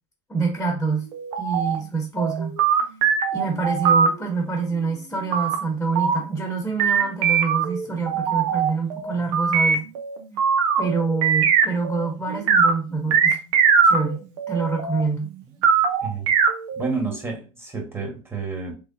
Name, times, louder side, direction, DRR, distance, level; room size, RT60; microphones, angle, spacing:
voice 1, 0.3-1.1 1.4-2.6 3.3-9.9 10.8-13.4 13.8-14.2 14.5-15.3, right 4 dB, 10° left, 1.0 m, -26 dB
sound 1, 1.1-1.8 2.2-4.1 5.3-5.5 5.9-6.5 6.8-12.1 12.3-12.7 13.1-15.0 15.6-16.9, right 6 dB, 75° right, 0.8 m, -21 dB
voice 2, 16.0-16.3 16.8-18.7, right 4 dB, 15° right, 1.5 m, -30 dB
3.4 x 3.1 x 2.7 m
hypercardioid pair, 90°, 16 cm